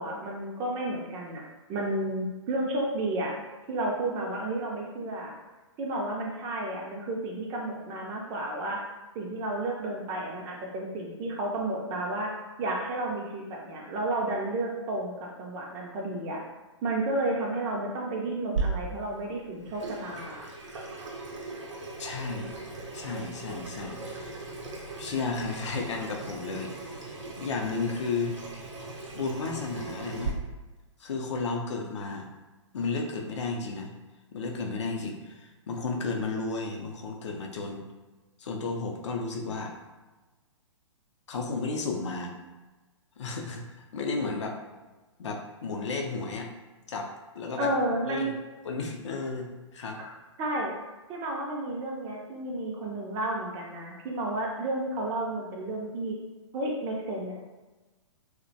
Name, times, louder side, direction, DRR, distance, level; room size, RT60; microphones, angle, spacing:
voice 1, 0.0-1.4 1.7-3.3 3.7-5.3 5.8-8.8 9.1-12.3 12.6-16.4 16.8-20.4 47.6-48.3 50.0-50.1 50.4-50.7 51.1-56.2 56.5-57.4, right 1 dB, 25° right, -1 dB, 0.4 m, -32 dB
Water tap faucet / Sink (filling or washing), 18.6-30.3, right 3 dB, 70° right, 0.6 m, -38 dB
voice 2, 22.0-22.5 22.9-24.4 25.0-28.3 29.1-30.4 31.0-32.3 32.7-33.9 34.3-37.9 38.4-39.7 41.3-42.3 43.2-44.6 45.2-46.5 46.9-47.7 48.1-48.3 48.6-50.0, left 4 dB, 65° left, 1 dB, 0.5 m, -33 dB
2.4 x 2.1 x 2.6 m, 1.2 s
figure-of-eight pair, 120°, 16 cm